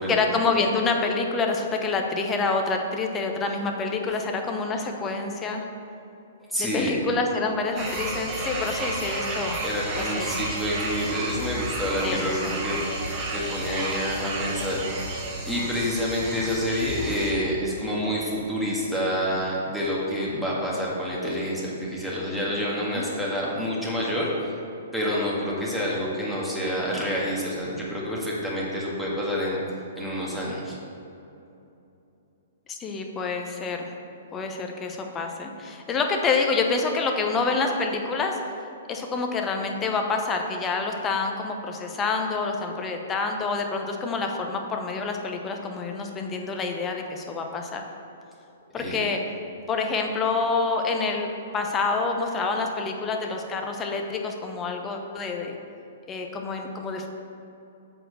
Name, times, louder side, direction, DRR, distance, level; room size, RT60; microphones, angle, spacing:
voice 1, 0.1-5.6 6.6-9.6 9.9-10.4 12.0-12.8 22.5-23.1 32.7-33.9 34.3-38.4 38.9-47.8 48.7-49.2 49.7-55.5 56.1-57.1, left 4 dB, 20° left, 3 dB, 0.9 m, -27 dB
voice 2, 6.5-7.0 9.6-12.8 13.3-14.8 15.4-24.3 24.9-29.6 30.0-30.8 48.8-49.0, equal, 5° left, -6 dB, 1.8 m, -28 dB
sound 1, 7.8-17.3, right 2 dB, 30° right, 1.7 m, -32 dB
7.8 x 4.4 x 6.6 m, 2.8 s
figure-of-eight pair, 120°, 0 cm